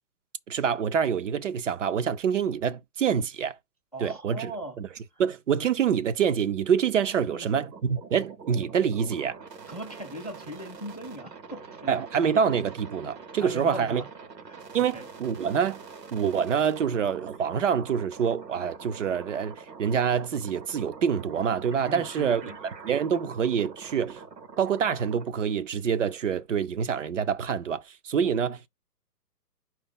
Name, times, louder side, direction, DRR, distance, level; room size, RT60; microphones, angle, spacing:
voice 1, 0.5-3.6 4.0-4.5 4.8-4.9 5.2-9.4 11.9-14.0 14.7-15.8 16.1-22.4 22.8-24.2 24.6-28.7, right 7 dB, 50° right, 0.5 m, -26 dB
voice 2, 3.9-4.8 7.3-7.5 9.7-12.0 13.4-14.1 14.4-15.1 21.9-22.6, right 1 dB, 25° left, 0.3 m, -39 dB
sound 1, 7.5-25.3, right 5 dB, 75° right, 1.4 m, -45 dB
5.1 x 2.8 x 3.7 m
figure-of-eight pair, 125°, 50 cm